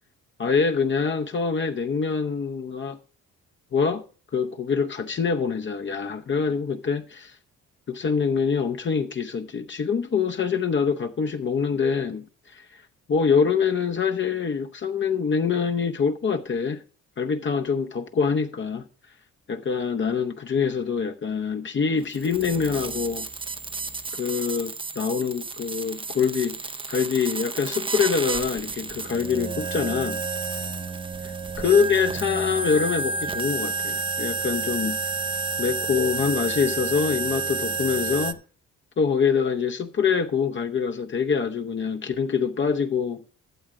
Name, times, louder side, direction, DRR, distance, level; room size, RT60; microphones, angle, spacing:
voice 1, 0.4-3.0 3.7-4.0 4.3-7.4 7.9-12.8 13.1-16.8 17.2-18.8 19.5-23.3 24.1-26.6 26.9-30.2 31.6-35.0 35.6-38.4 39.0-43.2, left 6 dB, 40° left, 0.8 m, -25 dB
sound 1, 22.0-38.3, right 4 dB, 15° right, 0.6 m, -30 dB
12.5 x 7.3 x 3.7 m
cardioid pair, 90°, 30 cm